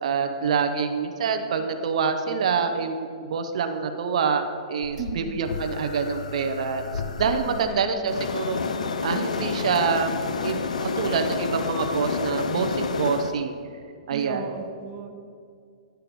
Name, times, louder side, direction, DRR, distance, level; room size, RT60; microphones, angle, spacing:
voice 1, 0.0-4.4 4.7-6.9 7.2-8.6 9.0-13.6 14.1-14.4, right 5 dB, 65° right, 6 dB, 0.7 m, -26 dB
sound 1, 4.8-13.4, left 5 dB, 85° left, 0.5 m, -30 dB
voice 2, 5.0-5.4 7.5-8.1 14.1-15.2, right 6 dB, 30° right, 4 dB, 0.6 m, -36 dB
10.0 x 4.5 x 5.2 m, 2.3 s
hypercardioid pair, 140°, 4 cm